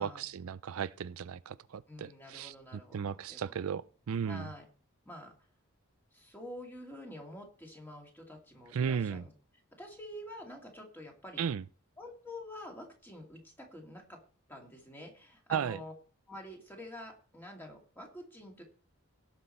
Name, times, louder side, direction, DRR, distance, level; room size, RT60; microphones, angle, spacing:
voice 1, 0.0-4.5 8.7-9.2 11.4-11.6 15.5-15.8, right 7 dB, 75° right, 0.4 m, -35 dB
voice 2, 1.9-3.5 4.3-4.7 5.1-5.3 6.1-9.3 9.8-11.4 12.0-14.2 14.5-15.9 16.3-18.6, left 1 dB, 10° left, 2.3 m, -47 dB
17.5 x 6.0 x 4.3 m
head